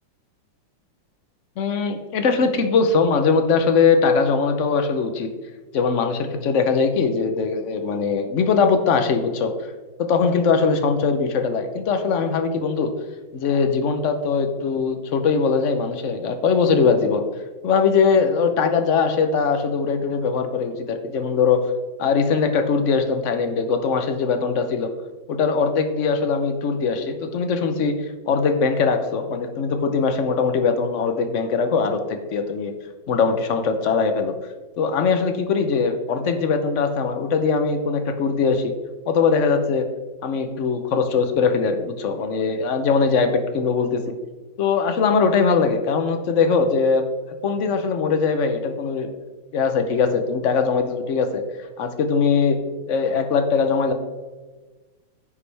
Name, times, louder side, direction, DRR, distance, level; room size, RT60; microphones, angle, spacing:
voice 1, 1.6-5.3 5.7-9.5 10.1-12.9 13.3-17.2 17.6-21.6 22.0-24.9 25.3-27.9 28.3-32.7 33.1-34.4 34.8-38.7 39.1-39.9 40.2-44.0 44.6-47.1 47.4-49.2 49.5-51.4 51.8-52.6 52.9-53.9, left 5 dB, 65° left, 7 dB, 0.7 m, -21 dB
9.8 x 7.3 x 3.3 m, 1.3 s
omnidirectional pair, 2.2 m